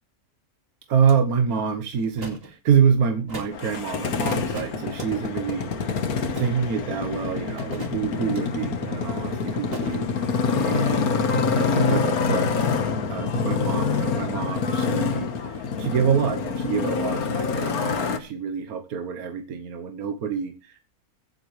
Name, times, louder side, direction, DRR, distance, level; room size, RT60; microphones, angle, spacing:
voice 1, 0.9-12.8 13.1-20.8, right 7 dB, 75° right, 7 dB, 1.6 m, -27 dB
sound 1, 1.1-1.2 2.2-2.5 3.3-3.6 4.5-5.1 6.3-6.8 7.6-8.4 9.7-10.0, right 2 dB, 40° right, 2.6 m, -38 dB
Motorcycle, 3.5-18.2, left 5 dB, 75° left, 1.8 m, -26 dB
22.5 x 8.0 x 3.2 m, 0.29 s
omnidirectional pair, 1.6 m